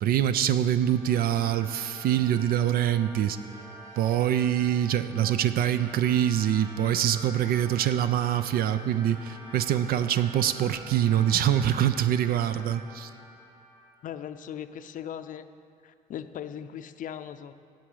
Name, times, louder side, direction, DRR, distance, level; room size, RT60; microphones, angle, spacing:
voice 1, 0.0-3.4 4.0-13.1, right 10 dB, 60° right, 12 dB, 0.5 m, -24 dB
sound 1, 0.8-14.5, right 1 dB, 20° right, 2.8 m, -46 dB
voice 2, 14.0-15.5 15.8-17.5, left 9 dB, 50° left, 11 dB, 0.5 m, -38 dB
7.8 x 7.5 x 8.6 m, 2.3 s
cardioid pair, 110°, 17 cm